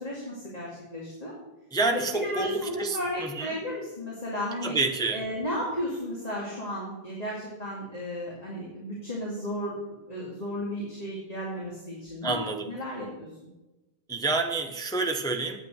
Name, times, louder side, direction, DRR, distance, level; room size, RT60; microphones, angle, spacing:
voice 1, 0.0-1.3 1.9-4.8 5.1-12.4 12.7-13.3, equal, 40° left, -5 dB, 2.4 m, -34 dB
voice 2, 1.7-3.5 4.6-5.2 12.2-12.7 14.1-15.6, right 3 dB, 5° left, 4 dB, 0.7 m, -28 dB
9.2 x 8.8 x 6.5 m, 1.0 s
omnidirectional pair, 1.0 m